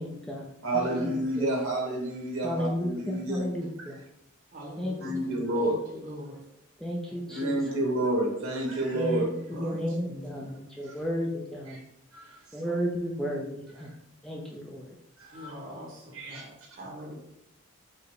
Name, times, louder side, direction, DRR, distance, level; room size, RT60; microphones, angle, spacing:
voice 1, 0.0-0.5 0.7-1.5 2.4-4.0 4.8-5.5 6.8-7.9 8.9-11.8 12.5-13.9 14.2-14.9, equal, ahead, -3 dB, 0.4 m, -33 dB
voice 2, 0.6-3.4 3.8-3.9 5.0-5.7 7.3-9.3 10.9-11.0 12.1-12.4 15.2-15.5 16.1-16.4, right 1 dB, 75° right, -1 dB, 1.3 m, -29 dB
voice 3, 4.5-6.4 7.1-7.3 7.6-7.7 9.5-10.6 12.1-12.6 15.3-17.1, equal, 40° right, -4 dB, 1.4 m, -43 dB
4.8 x 2.0 x 4.6 m, 0.79 s
head